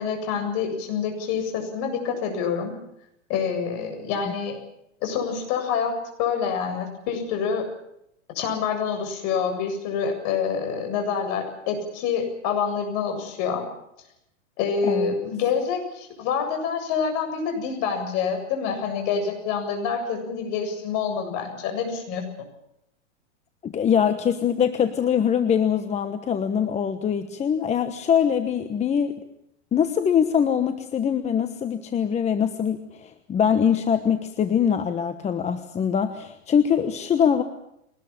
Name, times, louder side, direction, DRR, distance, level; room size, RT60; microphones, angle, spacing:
voice 1, 0.0-2.7 3.3-4.6 5.0-7.7 8.3-13.6 14.6-22.2, left 6 dB, 45° left, 5 dB, 7.8 m, -27 dB
voice 2, 14.8-15.2 23.6-29.2 29.7-37.4, left 8 dB, 15° left, 9 dB, 1.2 m, -23 dB
23.0 x 20.0 x 8.8 m, 0.78 s
hypercardioid pair, 135°, 38 cm